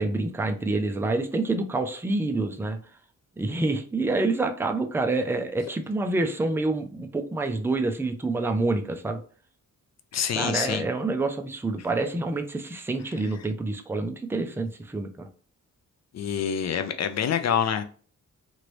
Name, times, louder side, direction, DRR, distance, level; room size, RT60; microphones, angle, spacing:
voice 1, 0.0-2.8 3.4-9.2 10.4-15.3, right 2 dB, 10° right, 5 dB, 0.3 m, -27 dB
voice 2, 10.1-10.8 16.1-17.8, left 8 dB, 55° left, 8 dB, 0.4 m, -26 dB
3.0 x 2.6 x 3.0 m, 0.42 s
wide cardioid pair, 160°, 33 cm